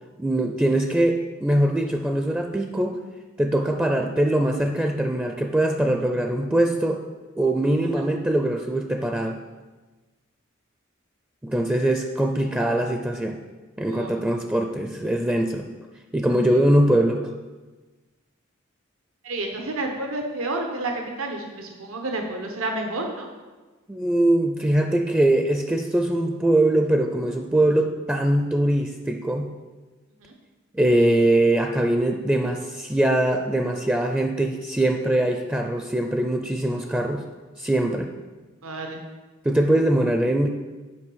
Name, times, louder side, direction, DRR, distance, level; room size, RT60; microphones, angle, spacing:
voice 1, 0.2-3.0 3.4-7.0 7.4-9.4 11.4-13.4 13.8-15.7 16.1-17.3 23.9-29.5 30.7-37.2 37.6-38.1 39.4-40.5, right 1 dB, 5° right, 4 dB, 0.4 m, -22 dB
voice 2, 19.2-23.3 30.2-30.3 38.6-39.0, right 2 dB, 90° right, 3 dB, 1.0 m, -30 dB
8.7 x 5.1 x 6.2 m, 1.3 s
head